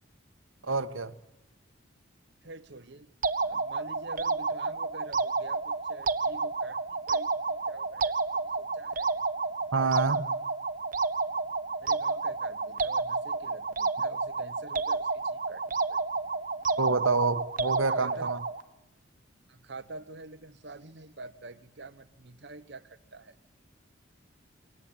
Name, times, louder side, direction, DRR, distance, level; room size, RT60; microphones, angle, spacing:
voice 1, 0.6-1.1 9.7-10.3 16.8-18.4, right 4 dB, 85° right, 1.3 m, -27 dB
voice 2, 2.4-3.1 3.4-9.2 11.8-16.0 17.7-18.3 19.5-23.4, right 3 dB, 60° right, 1.1 m, -47 dB
sound 1, 3.2-18.6, right 4 dB, 45° right, 0.9 m, -30 dB
29.0 x 22.5 x 8.9 m
head